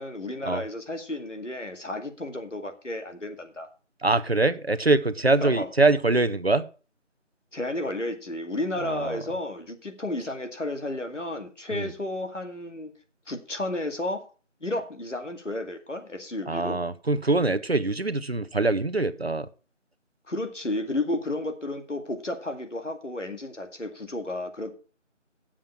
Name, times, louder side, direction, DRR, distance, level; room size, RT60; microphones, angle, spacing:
voice 1, 0.0-3.7 5.4-5.7 7.5-12.9 13.3-14.2 14.6-16.8 20.3-24.7, left 1 dB, 75° left, 2.2 m, -32 dB
voice 2, 4.0-6.7 8.8-9.2 11.7-11.9 16.5-19.5, right 2 dB, 55° right, 0.8 m, -23 dB
9.5 x 7.4 x 5.8 m
figure-of-eight pair, 175°, 37 cm